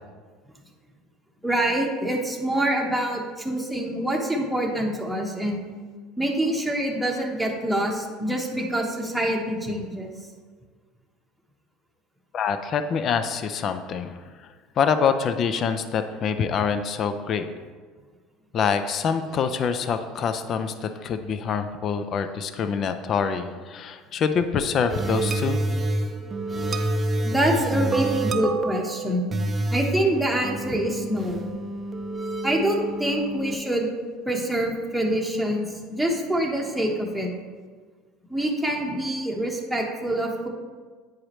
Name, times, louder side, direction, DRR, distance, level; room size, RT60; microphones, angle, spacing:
voice 1, 1.4-5.6 6.2-10.1 27.2-29.4 29.7-31.5 32.4-33.9 34.3-37.3 38.3-40.5, right 1 dB, ahead, -1 dB, 1.0 m, -25 dB
voice 2, 12.3-14.2 14.8-17.5 18.5-25.6, left 6 dB, 45° left, 9 dB, 0.5 m, -25 dB
sound 1, 24.9-33.5, right 2 dB, 25° right, 0.5 m, -28 dB
8.8 x 4.7 x 3.1 m, 1.5 s
supercardioid pair, 110°, 0 cm